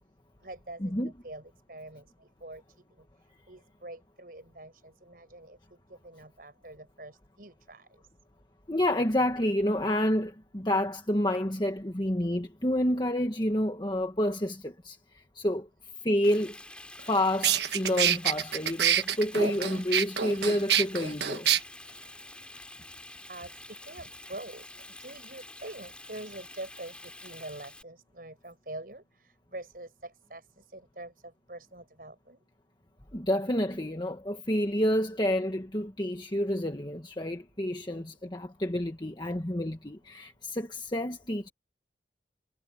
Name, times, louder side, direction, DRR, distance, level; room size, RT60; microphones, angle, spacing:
voice 1, 0.4-0.9 1.2-1.4 1.7-2.0 2.4-2.6 3.5-5.6 6.0-7.9 23.3-24.6 25.0-30.4 30.7-31.1 31.5-32.4 37.9-38.1, right 2 dB, 50° right, 6.8 m, -44 dB
voice 2, 8.7-15.7 16.0-16.6 17.1-21.5 33.1-41.5, left 1 dB, 25° left, 1.5 m, -29 dB
Frying (food), 16.2-27.8, left 1 dB, 5° left, 5.9 m, -48 dB
sound 1, 17.0-17.1 17.4-21.6, right 9 dB, 70° right, 1.3 m, -26 dB
head